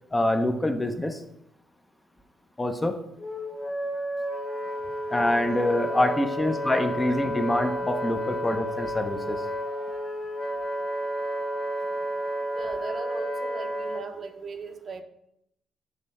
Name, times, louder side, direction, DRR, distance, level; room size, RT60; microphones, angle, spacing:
voice 1, 0.1-1.2 2.6-3.0 5.1-9.4, left 1 dB, 15° left, 6 dB, 0.6 m, -25 dB
Wind instrument woodwind instrument, 3.2-14.0, equal, 50° left, 1.0 m, -31 dB
voice 2, 12.5-15.0, right 4 dB, 45° right, 7 dB, 0.7 m, -38 dB
6.5 x 3.2 x 5.4 m, 0.80 s
cardioid pair, 90°, 0 cm